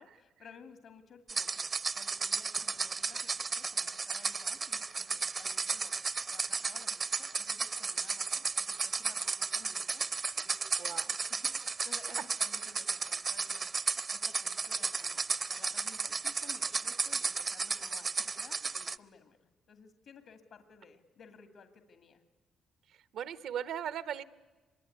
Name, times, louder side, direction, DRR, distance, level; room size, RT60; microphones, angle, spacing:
voice 1, 0.0-1.7 1.9-10.0 10.4-13.7 14.1-15.2 15.5-22.2, left 6 dB, 70° left, 9 dB, 2.1 m, -57 dB
sound 1, 1.3-19.0, right 4 dB, 35° right, 0.7 m, -34 dB
voice 2, 10.8-11.1 23.1-24.2, right 9 dB, 75° right, 15 dB, 1.1 m, -37 dB
25.0 x 22.0 x 9.6 m, 1.3 s
cardioid pair, 90°, 0 cm